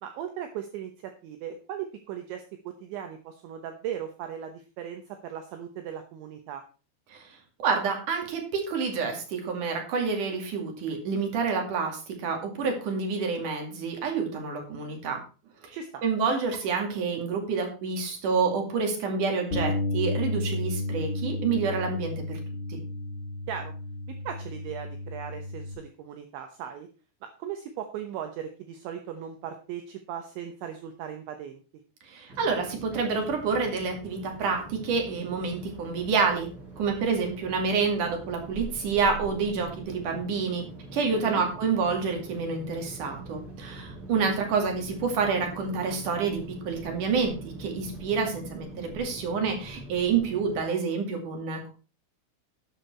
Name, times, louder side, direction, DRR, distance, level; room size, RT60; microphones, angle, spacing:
voice 1, 0.0-6.6 15.7-16.0 23.5-23.7 24.2-26.9 27.4-31.6 41.1-41.4, right 9 dB, 75° right, 6 dB, 3.0 m, -38 dB
voice 2, 7.6-15.2 15.6-22.4 22.7-22.8 32.1-36.5 36.8-40.6 40.9-51.7, right 5 dB, 50° right, 3 dB, 3.0 m, -28 dB
Bass guitar, 19.5-25.7, left 2 dB, 60° left, 1.4 m, -32 dB
sound 1, 32.3-50.6, right 2 dB, 25° right, 4.8 m, -44 dB
12.0 x 8.4 x 4.5 m, 0.35 s
omnidirectional pair, 6.0 m